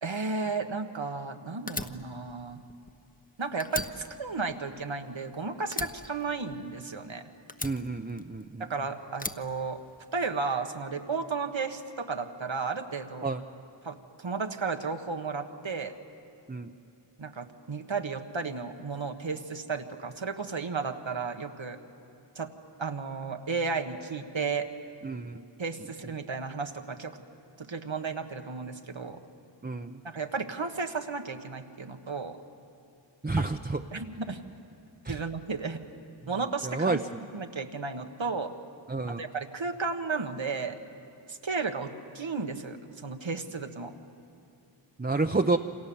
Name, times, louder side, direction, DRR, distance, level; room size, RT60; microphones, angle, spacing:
voice 1, 0.0-2.6 3.4-7.2 8.6-9.8 10.1-13.3 13.8-15.9 17.2-21.8 22.3-22.5 22.8-24.7 25.6-27.2 27.6-29.2 30.0-32.4 33.4-33.5 33.9-34.4 35.1-35.8 36.3-37.0 37.3-38.5 39.2-40.8 41.3-43.9, right 4 dB, 80° right, 6 dB, 1.5 m, -33 dB
Fire, 1.7-3.3 3.6-5.3 5.7-7.0 7.5-8.6 9.1-10.3, left 2 dB, 20° left, 1.0 m, -38 dB
voice 2, 7.6-8.7 13.2-13.4 16.5-16.7 25.0-25.4 29.6-30.0 33.2-33.8 35.0-35.2 36.6-37.0 38.9-39.2 45.0-45.6, right 3 dB, 20° right, 5 dB, 0.8 m, -29 dB
28.5 x 26.5 x 7.2 m, 2.6 s
wide cardioid pair, 40°, 46 cm